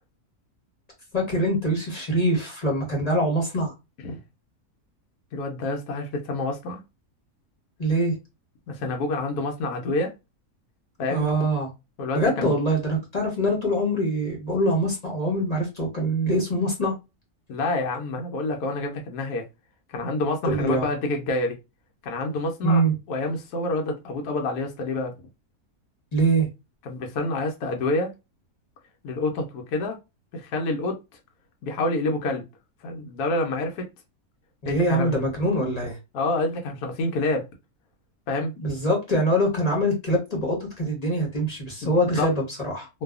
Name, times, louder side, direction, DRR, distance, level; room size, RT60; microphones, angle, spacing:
voice 1, 1.1-3.7 7.8-8.1 11.1-11.7 12.1-16.9 20.4-20.9 22.6-22.9 26.1-26.5 34.6-36.0 38.6-42.9, right 1 dB, 30° left, 0.8 m, -24 dB
voice 2, 5.3-6.8 8.7-10.1 11.0-11.3 12.0-12.5 17.5-19.5 19.9-21.6 22.0-22.8 23.1-25.1 26.8-28.1 29.0-30.0 30.3-31.0 31.6-32.5 32.8-33.9 34.6-35.2 36.1-37.4 38.3-38.5 41.8-42.3 42.9-43.0, left 2 dB, 80° left, 1.1 m, -27 dB
2.6 x 2.3 x 2.3 m
omnidirectional pair, 1.6 m